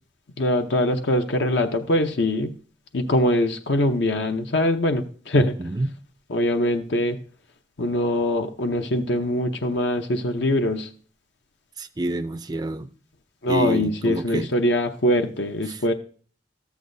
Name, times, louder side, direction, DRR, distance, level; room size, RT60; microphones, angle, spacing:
voice 1, 0.4-2.5 2.9-5.6 6.3-7.2 7.8-10.9 13.4-15.9, left 1 dB, 70° left, 0.8 m, -22 dB
voice 2, 5.3-5.9 11.8-12.9 13.5-14.5 15.7-15.8, right 1 dB, 20° right, 0.4 m, -28 dB
13.5 x 8.2 x 2.7 m
head